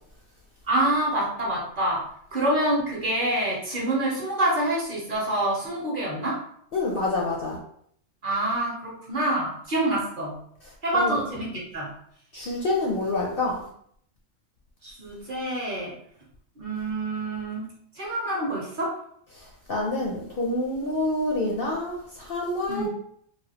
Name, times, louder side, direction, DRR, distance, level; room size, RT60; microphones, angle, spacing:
voice 1, 0.7-2.1 2.3-6.4 8.2-10.4 10.8-11.9 14.8-15.9 16.6-19.0 22.7-22.9, right 1 dB, 45° right, -4 dB, 0.9 m, -26 dB
voice 2, 6.7-7.6 10.6-11.2 12.3-13.6 19.3-22.9, left 2 dB, 60° left, -2 dB, 0.6 m, -27 dB
3.2 x 2.3 x 2.8 m, 0.66 s
omnidirectional pair, 1.4 m